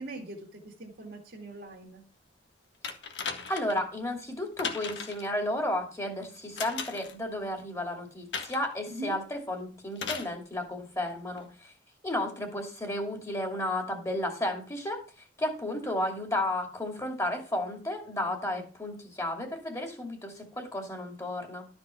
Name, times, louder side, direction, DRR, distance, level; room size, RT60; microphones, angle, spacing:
voice 1, 0.0-2.0 8.9-9.2 18.6-18.7, right 2 dB, 65° right, -1 dB, 2.0 m, -41 dB
sound 1, 2.8-3.8 4.6-5.3 6.6-7.2 8.3-8.7 10.0-10.3 11.4-11.5, left 5 dB, 80° left, 1.6 m, -36 dB
voice 2, 3.5-11.7 12.0-15.0 15.4-21.7, left 1 dB, 15° left, 2 dB, 2.5 m, -33 dB
13.0 x 5.3 x 5.9 m, 0.38 s
head